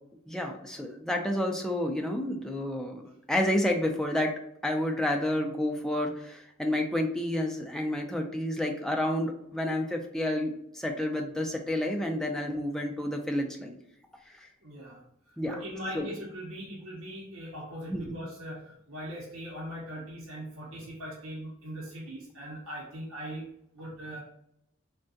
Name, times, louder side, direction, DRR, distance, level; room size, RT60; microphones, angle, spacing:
voice 1, 0.3-4.3 4.6-13.8 14.4-14.5 15.4-15.5 15.9-16.1 17.9-18.1, left 1 dB, 5° left, 1 dB, 0.3 m, -30 dB
voice 2, 14.6-15.0 15.5-24.2, equal, 75° right, -5 dB, 0.8 m, -40 dB
3.4 x 2.2 x 2.6 m, 0.78 s
head